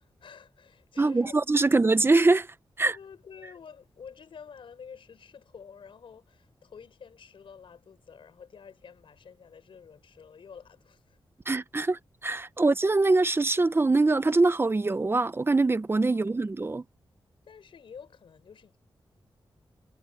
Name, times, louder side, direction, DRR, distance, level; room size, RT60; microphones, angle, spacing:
voice 1, 0.0-1.8 2.9-11.2 16.1-16.4 17.5-18.8, left 6 dB, 80° left, 4.6 m, -49 dB
voice 2, 1.0-2.5 2.8-3.0 11.5-16.8, right 3 dB, 25° right, 0.8 m, -23 dB
wide cardioid pair, 100°, 9 cm